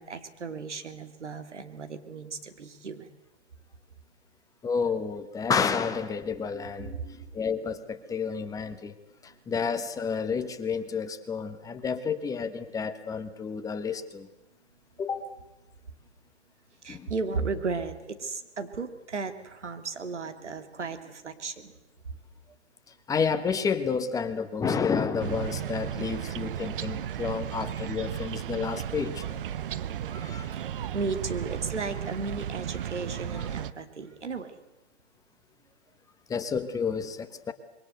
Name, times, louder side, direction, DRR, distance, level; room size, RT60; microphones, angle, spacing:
voice 1, 0.0-3.1 6.5-7.4 16.8-21.7 30.1-30.6 30.9-34.6, right 4 dB, 80° right, 8 dB, 2.8 m, -35 dB
voice 2, 4.6-6.9 7.3-8.9 9.2-14.3 15.0-15.3 16.9-17.1 23.1-29.4 30.1-30.6 36.3-37.5, left 6 dB, 10° left, 9 dB, 1.2 m, -30 dB
sound 1, 25.2-33.7, right 10 dB, 50° right, 1.0 m, -34 dB
26.0 x 22.5 x 7.9 m, 0.97 s
hypercardioid pair, 130°, 35 cm